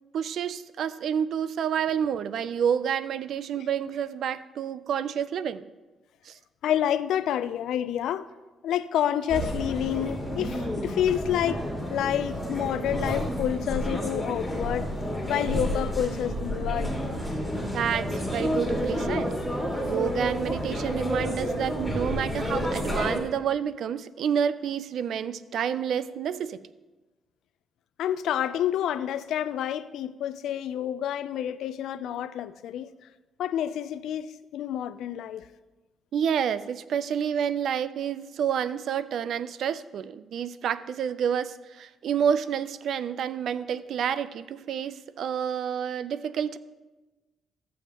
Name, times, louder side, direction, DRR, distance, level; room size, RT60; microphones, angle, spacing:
voice 1, 0.1-5.7 6.3-6.4 17.7-19.4 19.8-26.6 36.1-46.6, right 8 dB, 70° right, 0.4 m, -29 dB
voice 2, 6.6-8.3 8.6-11.6 11.9-14.9 15.3-16.9 28.0-32.9 33.4-35.5, left 10 dB, 80° left, 0.4 m, -28 dB
sound 1, 9.3-23.2, equal, 5° left, 2.5 m, -30 dB
14.0 x 7.1 x 2.9 m
cardioid pair, 90°, 0 cm